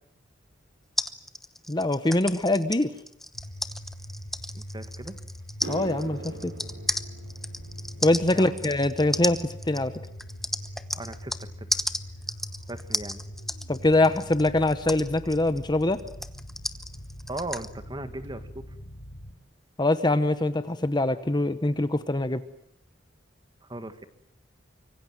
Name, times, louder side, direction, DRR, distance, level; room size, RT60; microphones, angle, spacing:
sound 1, 1.0-11.4 11.7-17.7, left 1 dB, ahead, 0.9 m, -33 dB
voice 1, 1.7-2.9 5.7-6.5 8.0-9.9 13.7-16.0 19.8-22.4, left 2 dB, 25° left, 11 dB, 1.0 m, -24 dB
sound 2, 3.3-19.3, equal, 70° left, 2.8 m, -42 dB
voice 2, 4.5-5.1 8.3-8.6 10.9-11.3 11.6-11.7 12.7-13.2 17.3-18.6 23.6-24.0, right 2 dB, 25° right, 10 dB, 1.8 m, -37 dB
sound 3, 4.9-5.0 5.4-13.9 14.2-14.6 15.4-15.5 18.2-18.3 20.0-20.1 20.3-20.5 20.8-21.3 21.7-21.8 22.3-22.4, right 2 dB, 85° right, 4.8 m, -46 dB
25.5 x 24.0 x 7.6 m, 0.70 s
head